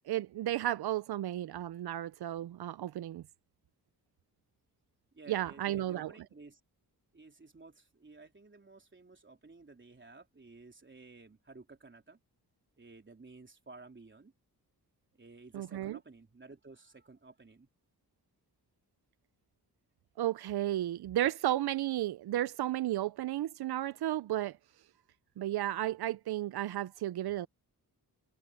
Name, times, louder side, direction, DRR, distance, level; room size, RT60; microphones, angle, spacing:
voice 1, 0.1-3.2 5.3-6.1 15.5-16.0 20.2-24.6 25.4-27.5, right 13 dB, 80° right, 0.5 m, -33 dB
voice 2, 5.1-6.6 7.1-12.2 12.8-14.3 15.1-17.7, right 3 dB, 30° right, 3.8 m, -54 dB
wide cardioid pair, 115°, 38 cm